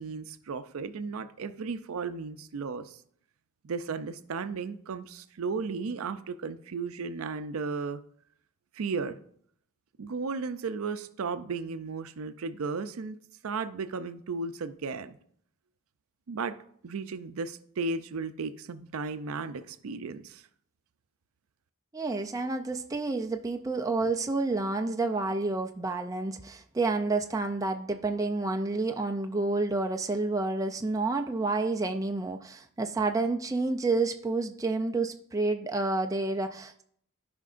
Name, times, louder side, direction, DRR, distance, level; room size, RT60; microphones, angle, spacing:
voice 1, 0.0-3.0 3.6-8.0 8.7-9.2 10.0-13.2 13.4-15.2 16.3-16.6 16.8-20.4, right 4 dB, 75° right, 12 dB, 0.5 m, -35 dB
voice 2, 21.9-36.8, right 3 dB, 15° right, 4 dB, 0.4 m, -29 dB
14.5 x 5.1 x 2.5 m, 0.64 s
head